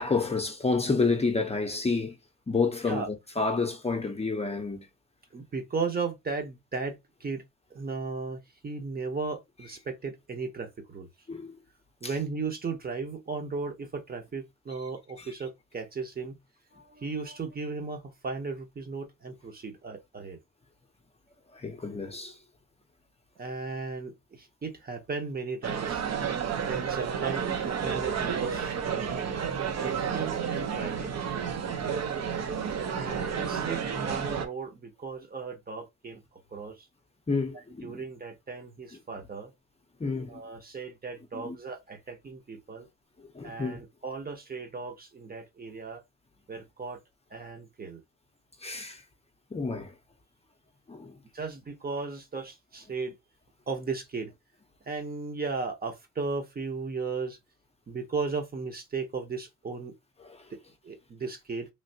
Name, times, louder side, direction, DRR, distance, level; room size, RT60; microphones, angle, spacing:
voice 1, 0.0-2.2 2.5-4.9 11.3-11.5 21.6-22.3 29.6-29.7 37.3-38.0 40.0-40.4 41.3-41.6 43.4-43.8 48.6-49.0 49.5-49.9 50.9-51.2 60.3-60.4, left 4 dB, 20° left, 0.6 m, -29 dB
voice 2, 5.3-7.4 7.7-11.1 12.0-16.4 16.7-20.4 23.4-26.0 26.6-29.2 29.7-31.2 33.0-36.2 36.5-36.9 37.5-39.5 40.3-42.9 43.4-46.0 46.5-47.0 47.3-48.0 51.3-53.1 53.7-54.3 54.9-57.4 57.9-59.9 60.5-60.6 60.8-61.7, right 4 dB, 30° right, 0.8 m, -36 dB
sound 1, 25.6-34.5, right 7 dB, 60° right, 0.8 m, -31 dB
3.2 x 2.6 x 2.7 m
cardioid pair, 90°, 30 cm